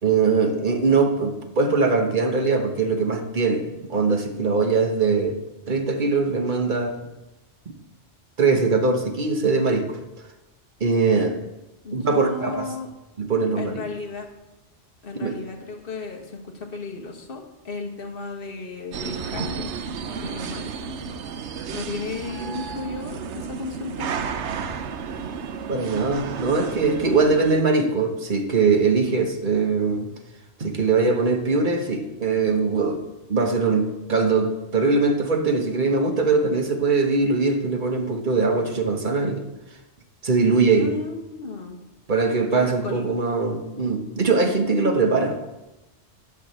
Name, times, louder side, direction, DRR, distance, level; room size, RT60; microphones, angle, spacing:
voice 1, 0.0-5.4 5.7-6.9 8.4-10.0 10.8-11.4 11.9-12.6 13.2-13.8 15.2-15.3 25.7-30.1 30.6-33.0 33.3-39.4 40.2-41.0 42.1-45.5, right 4 dB, 45° right, 5 dB, 1.3 m, -21 dB
voice 2, 11.8-12.9 13.5-14.3 15.0-19.7 20.2-21.0 21.7-24.3 40.7-41.8 42.5-43.1, left 3 dB, 50° left, 2 dB, 1.6 m, -34 dB
sound 1, 18.9-27.5, right 6 dB, 75° right, 1.0 m, -32 dB
12.0 x 5.0 x 7.5 m, 0.99 s
omnidirectional pair, 1.2 m